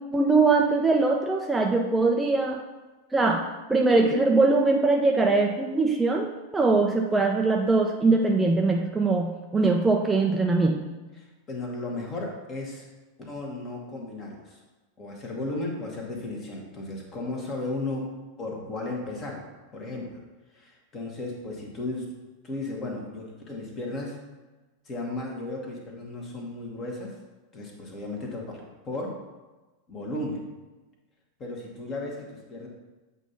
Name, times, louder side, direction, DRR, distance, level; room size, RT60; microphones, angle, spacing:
voice 1, 0.1-2.6 3.1-10.9, right 3 dB, 10° right, 1 dB, 0.5 m, -22 dB
voice 2, 11.2-12.9 13.2-14.6 15.0-18.1 18.4-19.5 19.7-20.2 20.5-22.1 22.4-24.2 24.8-27.2 27.5-29.2 29.9-30.4 31.4-32.7, left 2 dB, 30° left, 0 dB, 1.4 m, -35 dB
7.9 x 2.7 x 5.7 m, 1.2 s
figure-of-eight pair, 90°, 0 cm